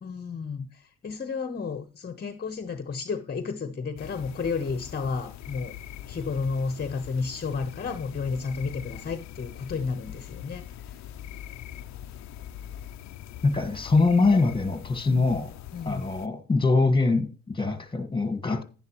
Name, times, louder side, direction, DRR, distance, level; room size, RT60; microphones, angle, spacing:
voice 1, 0.0-5.7 6.1-11.0 15.1-15.3 15.7-16.1, left 5 dB, 30° left, 1.0 m, -32 dB
sound 1, 4.0-16.3, left 11 dB, 65° left, 0.6 m, -42 dB
voice 2, 13.4-15.5 15.8-18.6, left 3 dB, 15° left, 1.6 m, -23 dB
10.5 x 10.5 x 3.0 m
cardioid pair, 90°, 30 cm